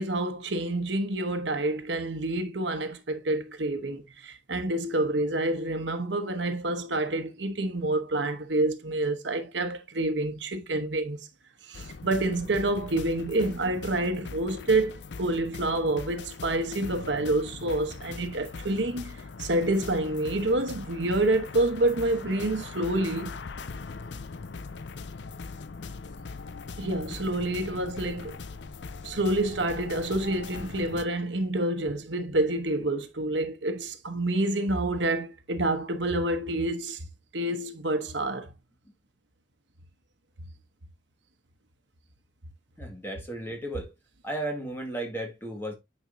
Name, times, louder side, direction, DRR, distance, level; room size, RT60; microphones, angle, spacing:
voice 1, 0.0-11.2 11.7-23.4 26.8-28.4 29.0-37.1 37.3-38.5, right 2 dB, 65° right, 1.1 m, -28 dB
sound 1, 11.7-31.0, left 4 dB, 65° left, 0.5 m, -41 dB
voice 2, 42.8-43.9 44.2-45.7, right 1 dB, 10° left, 1.9 m, -34 dB
9.2 x 5.2 x 2.7 m
head